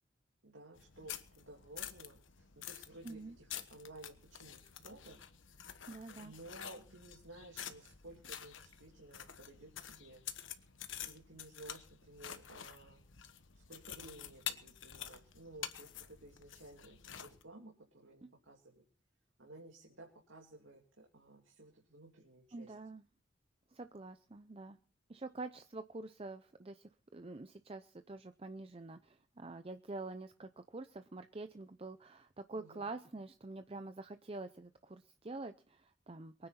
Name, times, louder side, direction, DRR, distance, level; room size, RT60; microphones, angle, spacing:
voice 1, 0.4-5.2 6.2-10.2 11.0-13.0 13.7-18.8 19.4-22.7 32.6-32.9, right 2 dB, 85° right, -1 dB, 3.0 m, -55 dB
sound 1, 0.8-17.4, left 10 dB, 80° left, 1.2 m, -48 dB
voice 2, 3.0-3.4 5.9-6.3 18.2-18.3 22.5-23.0 23.7-24.8 25.1-36.5, right 3 dB, 30° right, 10 dB, 0.6 m, -47 dB
23.0 x 9.6 x 4.2 m, 0.42 s
head